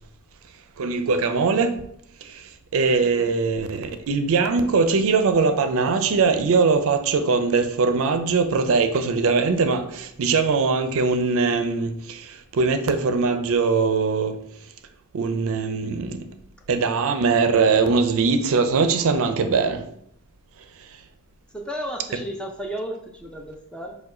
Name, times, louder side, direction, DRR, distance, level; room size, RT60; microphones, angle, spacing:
voice 1, 0.8-1.7 2.2-14.4 15.1-16.3 16.7-19.8, right 4 dB, 65° right, 0.4 m, -21 dB
voice 2, 2.8-3.3 21.5-24.0, equal, 5° left, 0.5 m, -34 dB
4.6 x 2.2 x 4.8 m
head